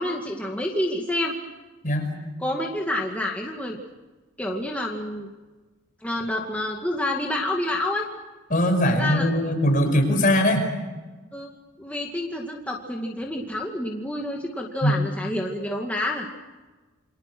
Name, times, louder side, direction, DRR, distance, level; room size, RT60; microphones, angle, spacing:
voice 1, 0.0-1.3 2.4-3.8 4.4-5.3 6.0-8.1 8.8-9.3 11.3-11.5 11.8-16.3, left 1 dB, 5° left, -1 dB, 2.2 m, -28 dB
voice 2, 8.5-10.7 14.8-15.0, equal, 40° left, 4 dB, 5.6 m, -21 dB
29.0 x 25.0 x 6.3 m, 1.2 s
head